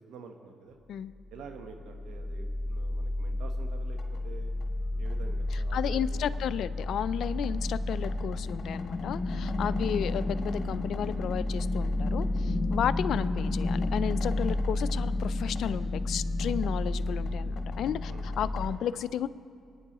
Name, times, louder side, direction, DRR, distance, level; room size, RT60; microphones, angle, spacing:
voice 1, 0.0-0.8 1.3-4.0 4.2-4.5 5.0-6.3 7.5-7.6 9.6-9.8 12.7-12.9 18.1-18.3, right 5 dB, 85° right, 5 dB, 1.0 m, -48 dB
sound 1, 1.3-18.7, left 2 dB, 55° left, 1.7 m, -31 dB
voice 2, 5.7-19.3, left 9 dB, 70° left, 14 dB, 0.4 m, -33 dB
25.0 x 9.7 x 3.0 m, 2.3 s
cardioid pair, 90°, 0 cm